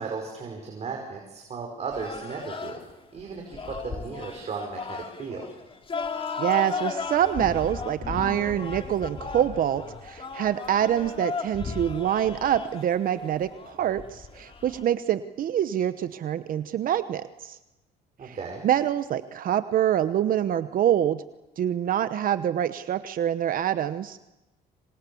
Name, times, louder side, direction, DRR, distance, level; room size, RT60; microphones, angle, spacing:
voice 1, 0.0-2.8 3.1-5.5 18.2-18.7, right 5 dB, 40° right, 1 dB, 5.4 m, -35 dB
sound 1, 1.9-14.8, left 5 dB, 35° left, 2.7 m, -35 dB
voice 2, 6.4-17.6 18.2-18.4 18.6-21.2 21.6-24.2, right 10 dB, 55° right, 12 dB, 1.0 m, -25 dB
27.0 x 26.0 x 7.1 m, 0.99 s
cardioid pair, 110°, 17 cm